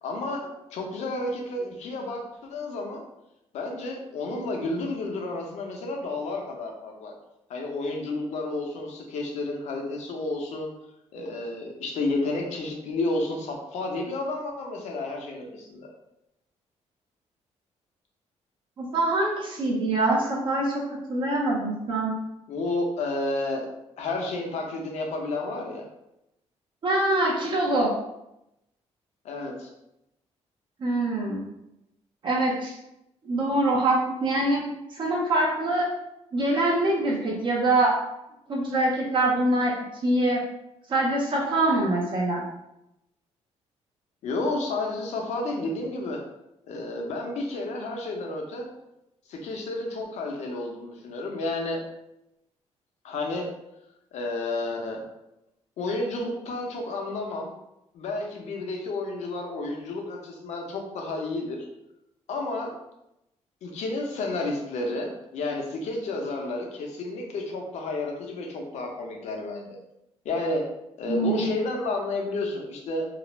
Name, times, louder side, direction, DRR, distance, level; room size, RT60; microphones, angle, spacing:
voice 1, 0.0-2.2 2.5-3.0 3.5-7.1 7.5-10.7 11.1-15.9 22.5-23.7 24.0-25.8 29.2-29.7 44.2-46.2 46.7-48.7 49.3-51.8 53.0-53.5 54.1-55.0 55.8-57.5 57.9-61.7 62.3-62.7 63.6-69.8 70.2-70.6 71.0-73.1, left 2 dB, 75° left, 1 dB, 0.6 m, -31 dB
voice 2, 18.8-22.1 26.8-27.9 30.8-31.4 32.2-32.8 33.2-34.6 34.9-35.9 36.3-38.0 38.5-39.8 40.0-40.4 40.9-42.4 71.0-71.5, right 2 dB, 45° right, -3 dB, 0.5 m, -24 dB
2.4 x 2.0 x 3.0 m, 0.87 s
cardioid pair, 135°, 12 cm